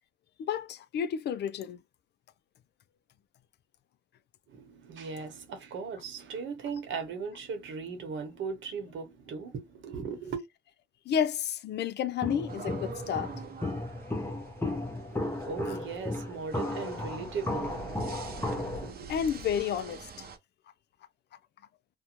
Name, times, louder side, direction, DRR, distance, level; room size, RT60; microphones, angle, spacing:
voice 1, 0.4-1.8 11.1-13.3 17.2-17.3 19.1-20.3, left 8 dB, 60° left, 0.4 m, -31 dB
voice 2, 4.5-10.4 15.1-19.2, right 5 dB, 75° right, 1.0 m, -38 dB
Walk footsteps, 12.2-18.9, left 2 dB, 10° left, 0.7 m, -35 dB
sound 1, 12.5-20.4, right 4 dB, 50° right, 0.6 m, -45 dB
2.6 x 2.2 x 2.9 m
cardioid pair, 90°, 20 cm